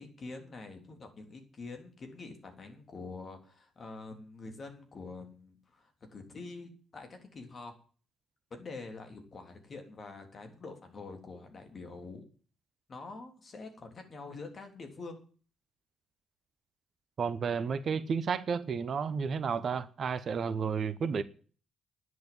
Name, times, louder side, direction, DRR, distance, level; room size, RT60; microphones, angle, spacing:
voice 1, 0.0-7.7 8.5-12.2 12.9-15.2, left 3 dB, 40° left, 3.5 m, -46 dB
voice 2, 17.2-21.2, right 6 dB, 50° right, 0.9 m, -32 dB
10.5 x 9.5 x 7.7 m
figure-of-eight pair, 40°, 0 cm